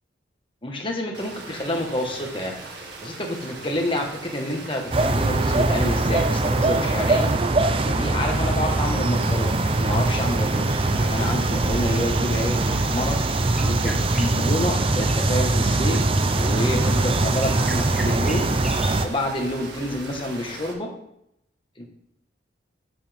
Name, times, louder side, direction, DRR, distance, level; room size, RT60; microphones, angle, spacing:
voice 1, 0.6-2.5 3.0-7.3 7.8-13.2 13.6-16.0 16.3-18.5 19.0-20.9 21.8-21.9, left 1 dB, 25° left, 1 dB, 1.5 m, -28 dB
sound 1, 1.1-20.7, right 2 dB, 70° right, 1.9 m, -40 dB
sound 2, 4.9-19.1, right 2 dB, 30° right, 0.5 m, -22 dB
sound 3, 13.5-20.1, equal, ahead, 1.2 m, -38 dB
11.5 x 7.4 x 3.6 m, 0.78 s
head